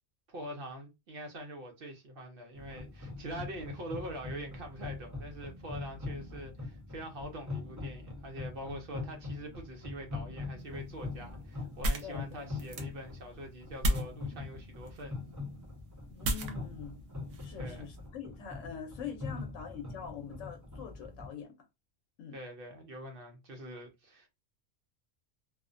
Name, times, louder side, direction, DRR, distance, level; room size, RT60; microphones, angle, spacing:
voice 1, 0.3-15.2 17.5-17.9 22.3-24.3, right 1 dB, 60° right, 0.7 m, -44 dB
sound 1, 2.5-21.3, left 3 dB, 20° right, 0.6 m, -43 dB
sound 2, 10.6-18.1, equal, 80° right, 0.9 m, -37 dB
voice 2, 12.0-12.5 16.1-17.0 17.4-21.5 22.2-22.4, left 7 dB, 85° left, 1.0 m, -44 dB
2.4 x 2.1 x 2.4 m
omnidirectional pair, 1.3 m